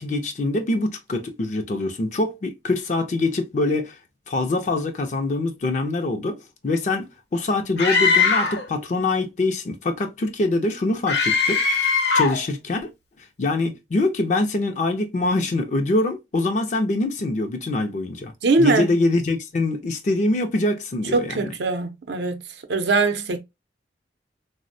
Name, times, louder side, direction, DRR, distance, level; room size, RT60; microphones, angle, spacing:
voice 1, 0.0-4.0 4.3-7.1 7.3-12.9 13.4-18.3 18.6-21.3, left 2 dB, 40° left, 0.4 m, -24 dB
Screaming, 7.8-8.7 11.1-12.4, left 5 dB, 70° left, 0.8 m, -20 dB
voice 2, 18.4-18.9 21.1-22.4 22.7-23.4, right 3 dB, 75° right, 0.5 m, -21 dB
3.4 x 2.0 x 2.5 m
head